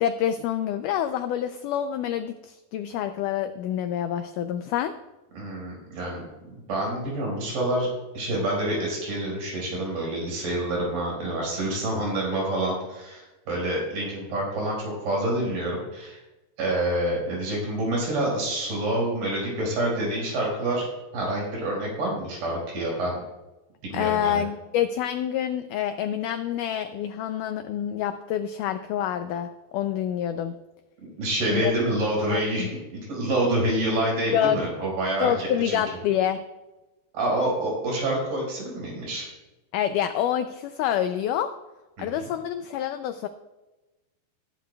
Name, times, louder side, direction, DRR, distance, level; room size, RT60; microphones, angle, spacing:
voice 1, 0.0-5.0 23.9-30.5 31.5-31.7 32.3-32.7 34.3-34.7 35.2-36.4 39.7-41.5 42.0-43.3, left 10 dB, 85° left, 9 dB, 1.8 m, -27 dB
voice 2, 5.3-6.2 6.7-7.9 8.1-16.2 16.6-20.9 21.1-23.2 23.9-24.4 31.0-35.3 35.6-35.8 37.1-39.3 42.0-42.3, right 1 dB, 80° right, -3 dB, 6.6 m, -27 dB
20.0 x 10.0 x 2.3 m, 1.1 s
omnidirectional pair, 4.2 m